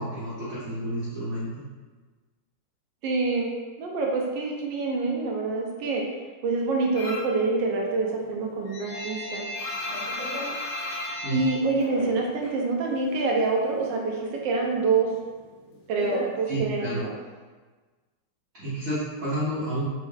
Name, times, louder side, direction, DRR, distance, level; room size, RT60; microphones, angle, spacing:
voice 1, 0.0-1.6 11.2-11.4 16.5-17.0 18.6-19.9, right 1 dB, 55° right, -11 dB, 1.0 m, -30 dB
voice 2, 3.0-3.5 3.8-6.0 6.4-9.5 10.8-11.0 11.3-14.2 14.4-15.1 15.9-17.1, right 3 dB, 75° right, -1 dB, 1.2 m, -26 dB
sound 1, 7.0-7.4 7.8-12.6 12.9-13.9 14.2-17.0, left 1 dB, 85° left, 1.8 m, -34 dB
4.5 x 2.0 x 3.2 m, 1.4 s
omnidirectional pair, 2.2 m